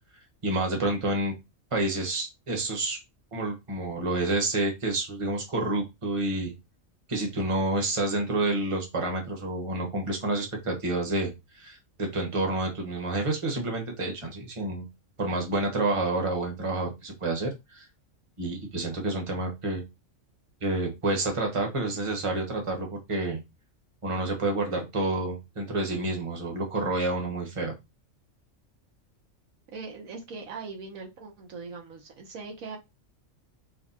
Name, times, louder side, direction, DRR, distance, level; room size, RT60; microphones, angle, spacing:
voice 1, 0.4-1.3 1.7-3.0 3.3-6.5 7.1-14.8 15.2-17.9 18.4-19.8 20.6-23.4 24.0-27.7, right 2 dB, 25° right, 1.0 m, -29 dB
voice 2, 29.7-32.8, right 4 dB, 85° right, 1.4 m, -40 dB
4.6 x 2.2 x 4.1 m
omnidirectional pair, 1.4 m